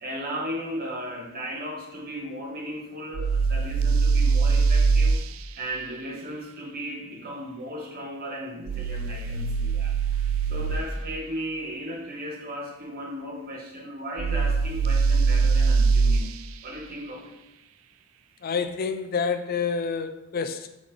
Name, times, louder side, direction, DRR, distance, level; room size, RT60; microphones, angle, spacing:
voice 1, 0.0-5.2 5.6-10.2 10.5-16.4 16.6-17.3, equal, 50° right, -1 dB, 1.5 m, -36 dB
sound 1, 3.1-5.2 8.7-10.8 14.2-16.3, right 4 dB, 75° right, 0.4 m, -22 dB
voice 2, 18.4-20.7, left 5 dB, 45° left, 9 dB, 0.4 m, -28 dB
6.6 x 5.1 x 3.5 m, 0.90 s
head